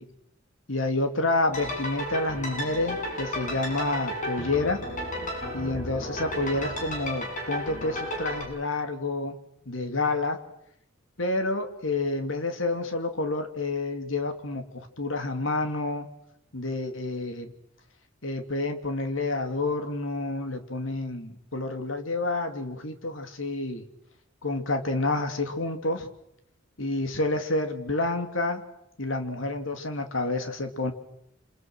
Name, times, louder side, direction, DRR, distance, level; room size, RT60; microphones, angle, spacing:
voice 1, 0.7-4.8 5.5-9.4 9.7-10.4 11.2-16.1 16.5-17.5 18.2-23.8 24.4-26.1 26.8-28.6 29.0-30.9, left 2 dB, 75° left, 6 dB, 2.7 m, -29 dB
sound 1, 1.5-8.4, left 1 dB, 40° left, 7.5 m, -33 dB
28.0 x 26.5 x 6.3 m, 0.81 s
head